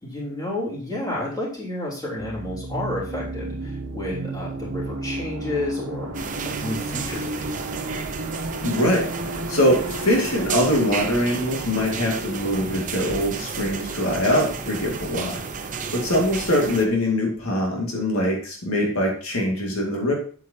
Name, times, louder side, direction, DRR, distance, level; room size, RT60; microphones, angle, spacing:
voice 1, 0.0-7.7, left 1 dB, 20° left, -5 dB, 3.3 m, -31 dB
sound 1, 2.2-13.7, right 2 dB, 70° right, 1.2 m, -33 dB
sound 2, 6.1-16.9, right 5 dB, 40° right, 0.8 m, -32 dB
voice 2, 8.6-9.1 9.5-15.4 15.9-20.1, left 1 dB, 75° left, -1 dB, 2.2 m, -23 dB
8.4 x 8.3 x 2.8 m, 0.42 s
head